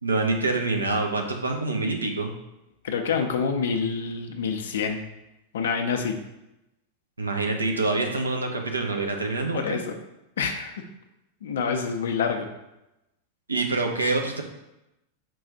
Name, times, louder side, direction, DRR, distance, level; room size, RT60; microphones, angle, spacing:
voice 1, 0.0-2.3 7.2-9.8 13.5-14.4, right 3 dB, 80° right, 2 dB, 0.6 m, -26 dB
voice 2, 2.8-5.0 5.5-6.2 9.5-10.0 10.4-10.8 11.4-12.5, left 6 dB, 60° left, 5 dB, 0.5 m, -27 dB
4.6 x 2.4 x 4.1 m, 0.92 s
figure-of-eight pair, 90°, 0 cm